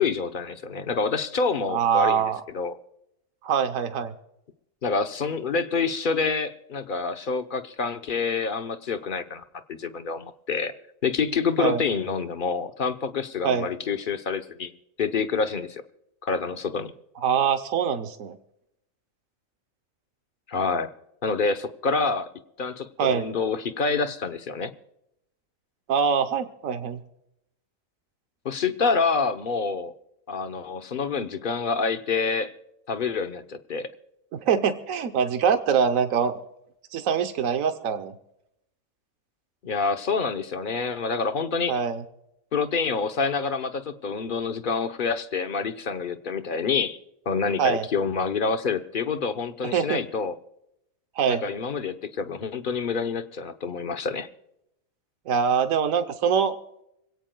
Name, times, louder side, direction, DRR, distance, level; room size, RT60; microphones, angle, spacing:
voice 1, 0.0-2.2 2.5-2.7 4.8-9.4 9.7-10.7 11.0-14.7 15.0-15.8 16.2-16.9 20.5-20.9 21.2-22.3 22.6-24.7 28.4-29.9 30.3-32.5 32.9-33.9 39.6-41.8 42.5-47.0 47.3-50.3 51.3-54.3, left 5 dB, 45° left, 9 dB, 0.9 m, -27 dB
voice 2, 1.7-2.4 3.4-4.1 11.6-11.8 13.4-13.7 17.2-18.4 23.0-23.2 25.9-27.0 34.3-36.4 36.9-38.2 41.7-42.0 47.6-47.9 49.7-50.0 51.2-51.4 55.3-56.6, right 7 dB, 75° right, 8 dB, 1.3 m, -24 dB
26.0 x 17.0 x 2.3 m, 0.82 s
omnidirectional pair, 1.4 m